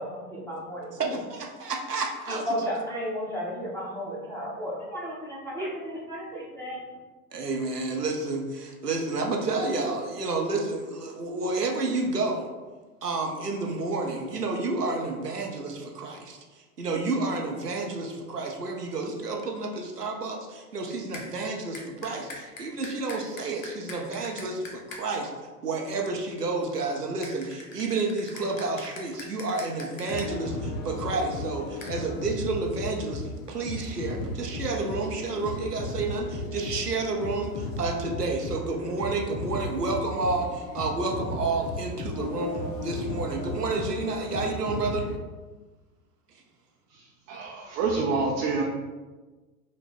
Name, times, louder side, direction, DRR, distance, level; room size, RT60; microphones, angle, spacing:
voice 1, 0.0-1.1 2.3-6.8, equal, 5° left, -6 dB, 1.3 m, -33 dB
voice 2, 1.0-2.5 7.3-12.5 13.0-25.3 25.6-45.1, right 3 dB, 90° right, 1 dB, 0.8 m, -30 dB
sound 1, 21.1-21.3 21.7-25.0 27.2-30.3 31.8-31.9, left 2 dB, 60° left, 1.1 m, -42 dB
sound 2, 30.1-45.2, left 2 dB, 25° left, 0.4 m, -35 dB
voice 3, 46.9-48.6, right 4 dB, 35° right, -1 dB, 0.6 m, -28 dB
5.1 x 2.2 x 4.3 m, 1.3 s
figure-of-eight pair, 90°, 46 cm